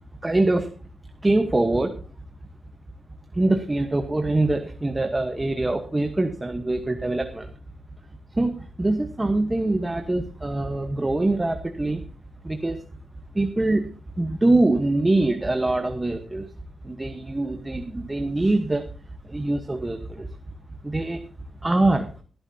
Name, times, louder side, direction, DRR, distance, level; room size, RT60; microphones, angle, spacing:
voice 1, 0.2-0.7 1.2-1.9 3.3-7.5 8.3-12.1 12.4-12.8 13.3-13.9 14.2-16.5 16.8-18.9 19.2-20.3 20.8-21.2 21.6-22.1, right 2 dB, 15° right, 6 dB, 1.1 m, -23 dB
20.0 x 11.5 x 2.8 m, 0.38 s
wide cardioid pair, 105°, 0 cm